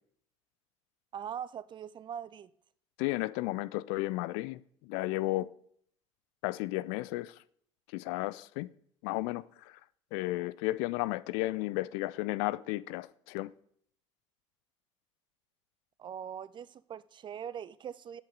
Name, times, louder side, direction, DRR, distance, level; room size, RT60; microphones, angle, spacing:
voice 1, 1.1-2.5 16.0-18.2, right 8 dB, 30° right, 0.5 m, -41 dB
voice 2, 3.0-5.5 6.4-7.4 7.9-8.7 9.0-9.8 10.1-13.5, left 19 dB, 55° left, 0.4 m, -33 dB
8.3 x 7.6 x 5.2 m
figure-of-eight pair, 60°, 16 cm